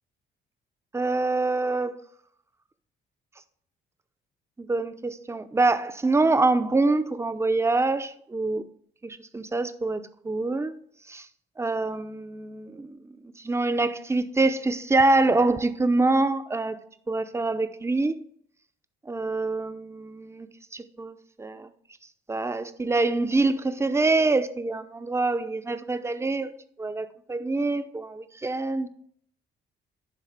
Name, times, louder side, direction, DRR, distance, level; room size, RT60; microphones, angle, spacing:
voice 1, 0.9-2.0 4.6-8.6 9.0-10.7 11.1-11.3 11.6-16.8 17.1-18.1 19.1-21.7 22.3-26.5 26.8-28.9, right 3 dB, 15° right, 0.6 m, -25 dB
10.0 x 3.8 x 4.9 m
cardioid pair, 90°, 20 cm